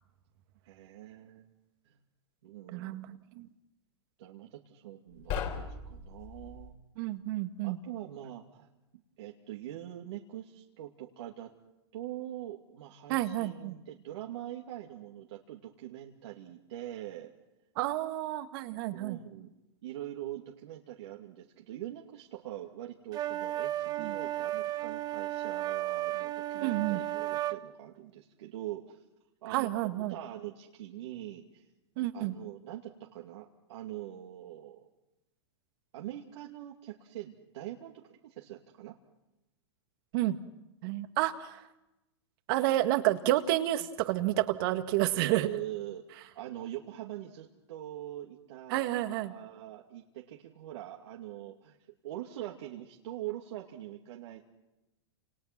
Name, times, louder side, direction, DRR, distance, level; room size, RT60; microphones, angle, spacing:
voice 1, 0.6-1.5 1.8-2.0 2.4-3.0 4.2-6.7 7.6-8.7 9.2-11.5 11.9-17.3 18.9-19.5 19.8-29.0 29.4-31.7 32.1-34.9 35.9-38.9 45.1-51.8 52.0-54.4, right 13 dB, 70° right, -1 dB, 2.6 m, -43 dB
voice 2, 2.7-3.5 7.0-7.8 13.1-13.8 17.8-19.2 24.0-24.2 26.6-27.0 29.5-30.1 32.0-32.3 40.1-40.4 40.8-41.6 42.5-45.5 48.7-49.3, right 15 dB, 50° right, 8 dB, 2.0 m, -30 dB
sound 1, 5.1-6.8, left 6 dB, 40° left, 4.1 m, -38 dB
sound 2, 23.1-27.6, right 14 dB, 25° right, 1.3 m, -34 dB
29.5 x 28.0 x 6.1 m, 0.98 s
hypercardioid pair, 140°, 15 cm